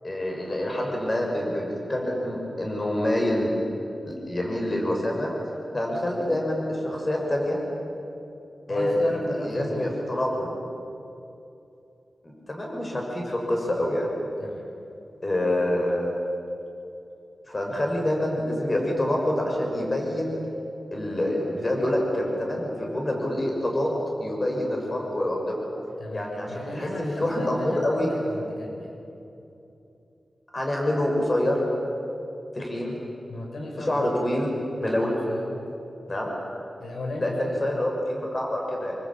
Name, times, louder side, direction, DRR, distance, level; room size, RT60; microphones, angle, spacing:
voice 1, 0.0-3.5 4.0-5.3 5.7-7.6 8.7-10.5 12.2-14.1 15.2-16.1 17.5-20.4 20.9-25.6 26.1-28.1 30.5-31.6 32.5-33.0 33.7-34.5 34.8-35.2 36.1-36.3 37.2-39.0, left 1 dB, 30° left, -1 dB, 6.7 m, -26 dB
voice 2, 8.7-10.0 14.4-14.7 26.0-29.0 33.3-34.0 34.8-35.5 36.8-37.6, left 1 dB, 75° left, 1 dB, 5.7 m, -36 dB
27.5 x 24.5 x 9.0 m, 2.8 s
wide cardioid pair, 105°, 0 cm